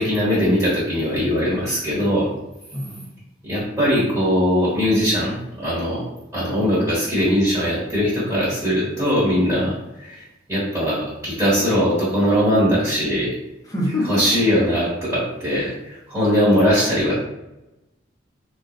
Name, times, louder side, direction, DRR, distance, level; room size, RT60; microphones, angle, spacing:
voice 1, 0.0-2.3 3.4-6.1 6.3-10.2 10.5-13.3 14.1-17.1, equal, 15° right, -9 dB, 1.3 m, -20 dB
voice 2, 2.7-3.1 13.6-14.6, left 1 dB, 15° left, -3 dB, 0.7 m, -26 dB
3.8 x 3.0 x 2.5 m, 0.96 s
head